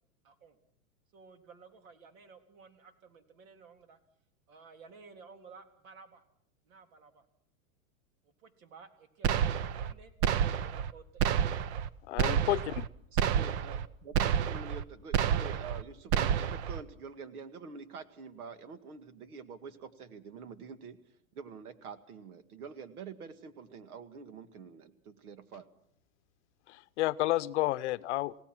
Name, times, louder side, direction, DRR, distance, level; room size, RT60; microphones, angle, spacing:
voice 1, 0.2-0.6 1.1-4.0 4.5-6.2 6.7-7.2 8.2-10.1 10.6-11.5, right 5 dB, 65° right, 7 dB, 3.7 m, -55 dB
sound 1, 9.2-9.9 10.2-10.9 11.2-11.9 12.2-12.9 13.2-13.9 14.1-14.8 15.1-15.8 16.1-16.8, right 9 dB, 50° right, 0.9 m, -29 dB
voice 2, 12.1-12.8 26.7-28.3, left 16 dB, 55° left, 17 dB, 0.7 m, -31 dB
voice 3, 13.1-21.0 21.3-25.7, right 5 dB, 85° right, 11 dB, 2.1 m, -46 dB
28.5 x 17.0 x 6.1 m, 0.69 s
supercardioid pair, 155°, 43 cm